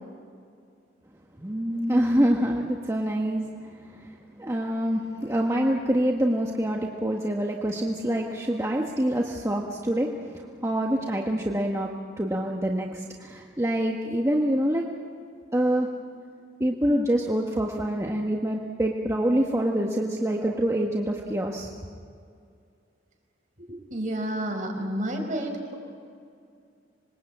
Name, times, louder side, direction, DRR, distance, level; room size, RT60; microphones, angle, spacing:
voice 1, 1.4-11.9 12.2-14.9 15.5-15.9 16.6-21.7, right 1 dB, 15° right, 0 dB, 1.4 m, -26 dB
voice 2, 23.7-25.7, right 1 dB, 45° right, 2 dB, 5.2 m, -30 dB
26.0 x 21.5 x 8.6 m, 2.3 s
head